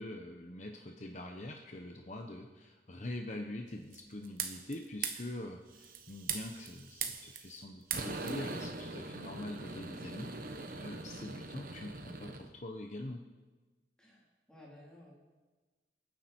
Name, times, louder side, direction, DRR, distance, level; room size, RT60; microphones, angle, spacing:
voice 1, 0.0-13.2, left 1 dB, 40° left, 3 dB, 1.0 m, -44 dB
sound 1, 3.9-4.7 5.0-5.3 5.7-7.6 7.9-12.5, right 5 dB, 50° right, 1.2 m, -41 dB
voice 2, 14.0-15.1, left 1 dB, 5° left, -5 dB, 3.7 m, -56 dB
29.0 x 9.8 x 4.5 m, 1.3 s
head